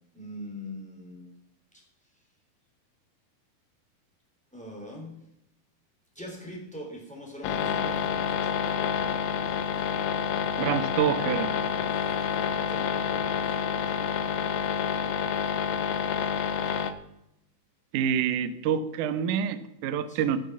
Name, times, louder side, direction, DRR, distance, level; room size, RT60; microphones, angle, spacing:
voice 1, 0.1-1.3 4.5-5.1 6.1-8.3 12.4-12.9 20.1-20.4, left 1 dB, ahead, -1 dB, 3.1 m, -41 dB
sound 1, 7.4-16.9, left 7 dB, 80° left, 1.7 m, -28 dB
voice 2, 10.3-11.6 17.9-20.4, right 8 dB, 75° right, 11 dB, 2.0 m, -27 dB
18.5 x 6.7 x 6.1 m, 0.82 s
omnidirectional pair, 4.4 m